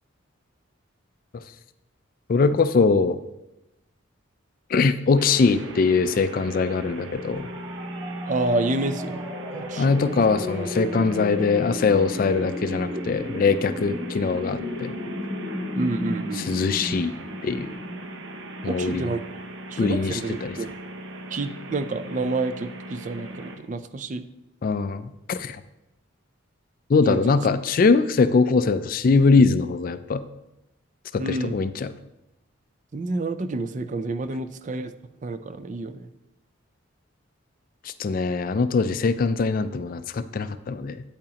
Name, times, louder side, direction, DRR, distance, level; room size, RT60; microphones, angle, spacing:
voice 1, 2.3-3.2 4.7-7.5 9.8-14.9 16.3-17.1 17.4-17.8 18.6-19.1 19.8-20.6 24.6-25.6 26.9-30.2 31.1-31.9 37.8-41.0, left 4 dB, 45° left, 13 dB, 0.3 m, -22 dB
sound 1, 5.2-23.5, equal, 70° right, 1.0 m, -37 dB
sound 2, 7.3-19.0, left 1 dB, 20° right, 3.3 m, -35 dB
voice 2, 8.3-10.0 15.8-16.5 18.6-19.2 19.7-20.7 21.3-24.2 27.0-27.3 31.2-31.6 32.9-34.9 35.2-36.0, right 2 dB, 40° right, 11 dB, 0.4 m, -29 dB
8.8 x 8.7 x 2.9 m, 0.92 s
head